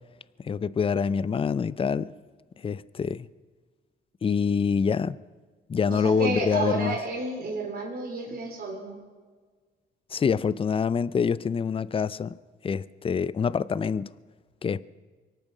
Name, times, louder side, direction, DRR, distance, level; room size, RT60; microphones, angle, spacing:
voice 1, 0.4-2.1 2.6-3.3 4.2-5.2 5.7-6.9 10.1-12.4 12.6-14.1 14.6-14.8, left 6 dB, 30° left, 0.5 m, -26 dB
voice 2, 5.9-9.0, right 3 dB, 50° right, 3.6 m, -31 dB
24.0 x 9.1 x 6.2 m
cardioid pair, 90°, 20 cm